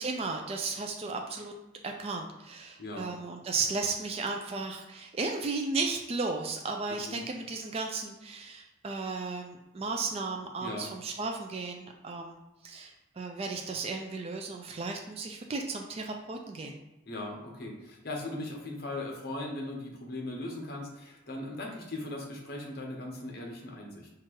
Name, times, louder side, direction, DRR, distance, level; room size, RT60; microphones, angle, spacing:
voice 1, 0.0-1.5 1.8-16.8, right 3 dB, 30° right, 2 dB, 0.3 m, -35 dB
voice 2, 2.8-3.1 7.1-7.2 10.6-10.9 17.1-24.1, left 2 dB, 50° left, 1 dB, 1.0 m, -38 dB
4.4 x 2.4 x 4.5 m, 0.97 s
head